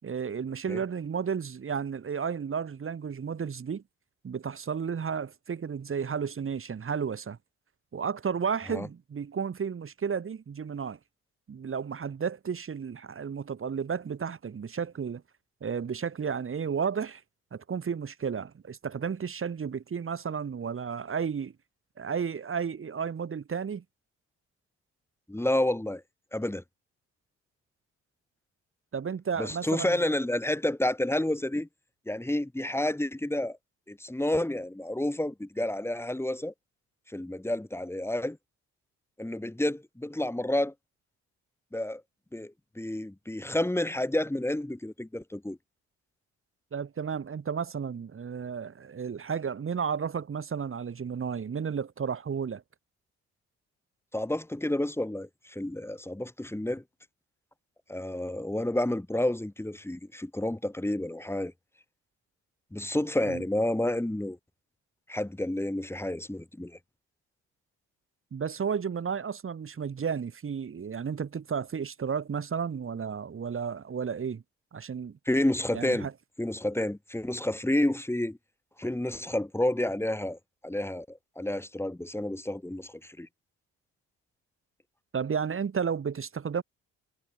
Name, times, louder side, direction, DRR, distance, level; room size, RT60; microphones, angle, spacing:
voice 1, 0.0-3.8 4.2-7.4 7.9-11.0 11.5-15.2 15.6-17.2 17.5-21.5 22.0-23.8 28.9-30.0 46.7-52.6 63.3-63.4 68.3-74.4 74.7-75.2 75.7-76.1 85.1-86.6, right 6 dB, 45° right, 5.1 m, -32 dB
voice 2, 25.3-26.0 26.3-26.6 29.4-31.7 32.1-33.6 33.9-36.5 37.1-38.4 39.2-40.7 41.7-42.0 42.3-45.6 54.1-56.8 57.9-61.5 62.7-64.4 65.1-66.8 75.3-76.1 76.4-78.4 78.8-83.3, left 1 dB, 10° left, 6.5 m, -30 dB
cardioid pair, 90°, 30 cm